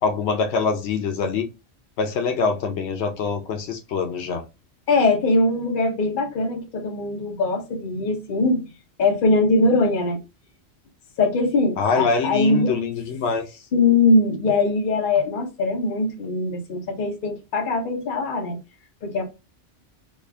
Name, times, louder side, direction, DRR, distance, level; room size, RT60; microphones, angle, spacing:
voice 1, 0.0-1.4 2.0-4.4 11.8-13.4, left 5 dB, 85° left, 0.9 m, -24 dB
voice 2, 4.9-8.6 9.0-10.2 11.2-12.7 13.7-18.6 19.0-19.2, left 2 dB, 55° left, 0.9 m, -21 dB
3.2 x 2.4 x 3.4 m
omnidirectional pair, 1.1 m